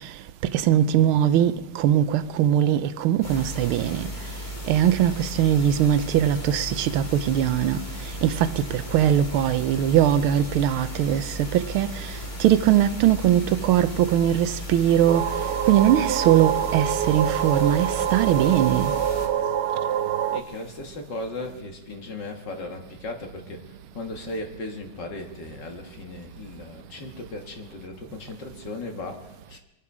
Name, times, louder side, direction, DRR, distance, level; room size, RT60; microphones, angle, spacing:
voice 1, 0.5-4.1 4.7-7.8 8.2-11.9 12.4-15.2 15.7-18.9, right 11 dB, 90° right, 1.5 m, -21 dB
sound 1, 3.2-19.3, left 1 dB, 20° left, 2.1 m, -36 dB
sound 2, 15.1-20.4, right 10 dB, 65° right, 1.3 m, -26 dB
voice 2, 20.3-29.6, left 2 dB, 60° left, 2.4 m, -37 dB
23.5 x 11.0 x 4.8 m
omnidirectional pair, 2.3 m